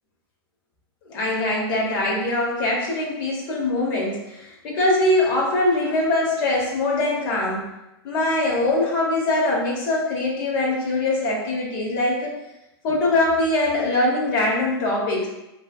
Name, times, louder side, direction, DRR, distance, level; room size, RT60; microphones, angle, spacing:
voice 1, 1.1-7.6 8.0-12.3 12.8-15.3, left 2 dB, 55° left, -3 dB, 1.0 m, -22 dB
3.1 x 2.5 x 2.3 m, 0.93 s
hypercardioid pair, 120°, 13 cm